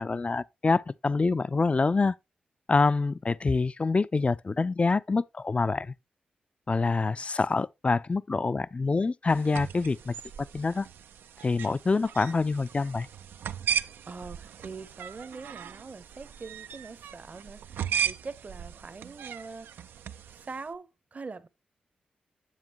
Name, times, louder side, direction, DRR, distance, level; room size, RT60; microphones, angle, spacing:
voice 1, 0.0-2.1 2.7-5.9 6.7-10.9 11.4-13.1, left 3 dB, 35° left, 0.4 m, -26 dB
sound 1, 9.3-20.6, right 8 dB, 80° right, 0.3 m, -37 dB
voice 2, 13.8-19.8 20.3-21.5, right 4 dB, 45° right, 0.8 m, -43 dB
7.4 x 7.3 x 2.9 m
supercardioid pair, 40°, 4 cm